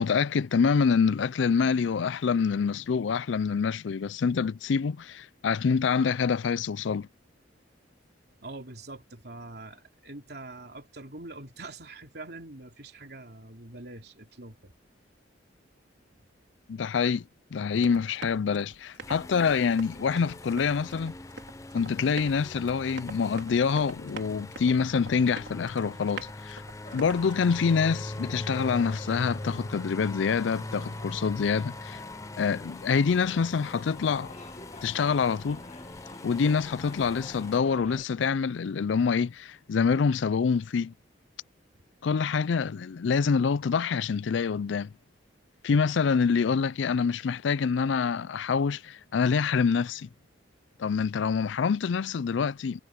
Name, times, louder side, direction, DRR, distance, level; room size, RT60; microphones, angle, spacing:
voice 1, 0.0-7.1 16.7-17.2 17.5-21.1 21.7-26.6 26.9-32.0 32.4-34.3 34.8-35.6 36.2-40.9 42.0-44.9 45.6-50.1 50.8-52.8, left 5 dB, 75° left, 0.4 m, -26 dB
voice 2, 8.4-14.7, right 2 dB, 55° right, 3.2 m, -44 dB
Run, 17.7-27.4, right 3 dB, 75° right, 4.1 m, -46 dB
sound 1, 19.0-37.6, left 2 dB, 15° left, 0.5 m, -41 dB
sound 2, 26.8-38.0, left 2 dB, 35° left, 1.5 m, -49 dB
head